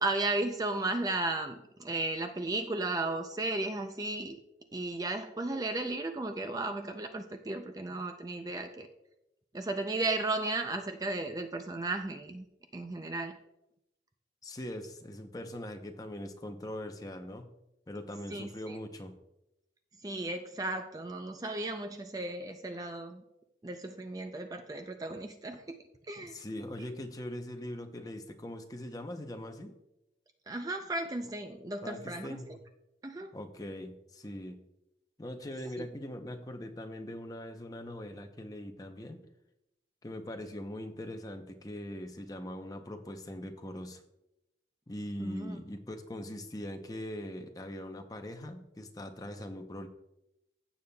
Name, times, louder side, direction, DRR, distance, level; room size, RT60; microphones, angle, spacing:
voice 1, 0.0-4.4 4.7-8.9 9.5-12.5 12.7-13.4 18.3-18.8 20.0-23.2 23.6-25.8 26.1-26.4 30.5-32.4 33.0-33.3 35.8-35.9 45.2-45.6, right 2 dB, 20° right, 6 dB, 0.4 m, -35 dB
voice 2, 14.4-17.5 17.9-19.1 26.2-29.8 31.8-32.6 33.3-34.6 35.2-39.2 40.0-44.0 44.9-49.9, left 1 dB, 20° left, 6 dB, 0.7 m, -41 dB
15.5 x 7.0 x 2.3 m, 0.87 s
head